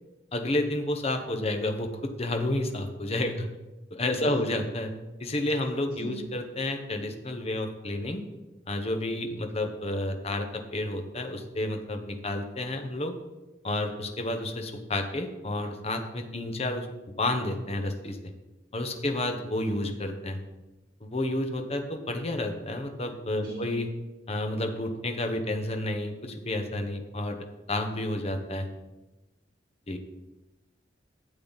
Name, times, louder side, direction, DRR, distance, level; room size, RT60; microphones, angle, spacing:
voice 1, 0.3-3.5 3.9-8.2 8.7-13.1 13.6-16.9 17.2-18.3 18.7-20.4 21.0-23.9 24.3-27.4 27.7-28.7 29.9-30.0, left 1 dB, 35° left, 5 dB, 1.1 m, -30 dB
voice 2, 23.4-23.8, right 1 dB, 60° right, -4 dB, 2.1 m, -40 dB
12.5 x 7.8 x 4.0 m, 1.1 s
head